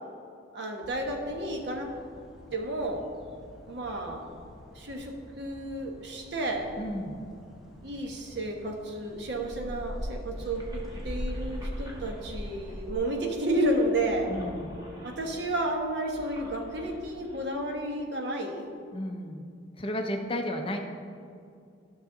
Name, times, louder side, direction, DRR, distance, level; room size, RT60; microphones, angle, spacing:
voice 1, 0.5-1.9 2.5-3.0 3.7-4.3 4.7-6.7 7.8-14.3 15.0-18.7, right 1 dB, 60° right, 2 dB, 1.1 m, -31 dB
sound 1, 0.8-12.9, equal, ahead, 1.3 m, -42 dB
voice 2, 6.8-7.3 14.3-14.8 18.9-19.5 19.8-20.8, equal, 25° left, 3 dB, 0.6 m, -33 dB
sound 2, 10.3-17.5, equal, 20° right, 1.4 m, -47 dB
13.0 x 6.2 x 3.8 m, 2.4 s
head